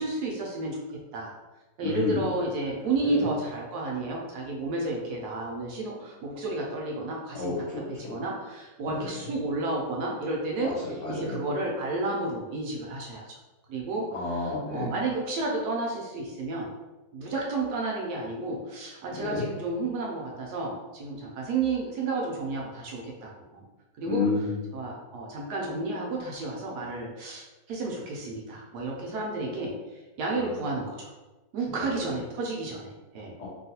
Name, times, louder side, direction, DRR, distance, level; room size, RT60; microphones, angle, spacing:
voice 1, 0.0-1.3 1.8-7.5 7.9-13.3 13.7-16.7 17.1-23.6 24.0-24.2 24.7-29.7 30.2-31.1 31.5-33.3, right 2 dB, 70° right, -2 dB, 1.0 m, -31 dB
voice 2, 1.8-2.3 3.0-3.2 7.3-8.2 8.9-9.0 10.6-10.7 11.0-11.4 14.1-14.9 19.1-19.4 24.1-24.6 33.4-33.5, left 4 dB, 75° left, -6 dB, 0.7 m, -30 dB
3.0 x 2.3 x 2.8 m, 1.1 s
omnidirectional pair, 2.0 m